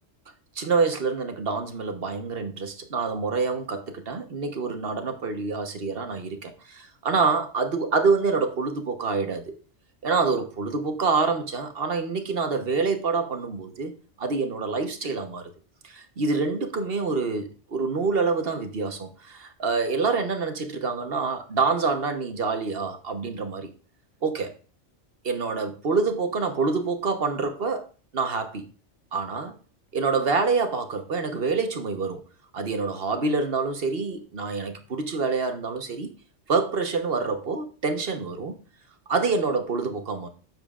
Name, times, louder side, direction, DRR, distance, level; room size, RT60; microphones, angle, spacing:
voice 1, 0.6-9.6 10.0-13.9 14.2-15.5 15.8-23.7 24.2-24.5 25.2-27.9 28.1-28.6 29.1-29.5 29.9-32.2 32.5-36.1 36.5-38.5 39.1-40.3, right 4 dB, 55° right, 1.3 m, -26 dB
9.5 x 7.0 x 2.4 m
omnidirectional pair, 1.2 m